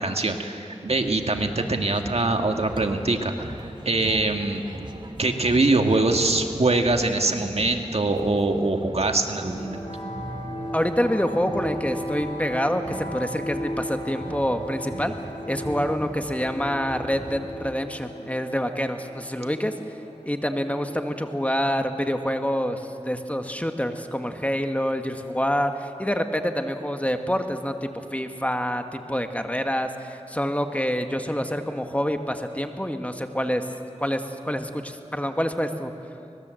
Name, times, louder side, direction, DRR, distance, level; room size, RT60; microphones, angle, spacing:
voice 1, 0.0-3.6 3.8-4.6 5.2-9.8, right 2 dB, 60° right, 4 dB, 1.8 m, -23 dB
sound 1, 0.9-17.9, right 1 dB, 45° right, 2.3 m, -40 dB
sound 2, 9.3-23.4, equal, 75° left, 6.6 m, -38 dB
voice 2, 10.7-15.1 15.5-19.7 20.2-33.6 34.0-35.9, equal, 10° left, 6 dB, 1.7 m, -27 dB
24.5 x 20.5 x 7.8 m, 2.7 s
cardioid pair, 40°, 12 cm